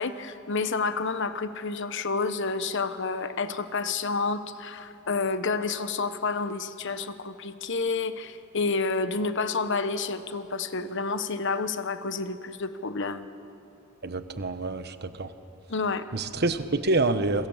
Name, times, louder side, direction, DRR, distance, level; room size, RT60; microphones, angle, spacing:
voice 1, 0.0-13.3 15.7-16.0, left 4 dB, 60° left, 11 dB, 1.2 m, -29 dB
voice 2, 14.0-15.3 16.1-17.5, right 2 dB, 50° right, 10 dB, 1.2 m, -27 dB
27.0 x 23.0 x 7.3 m, 2.9 s
head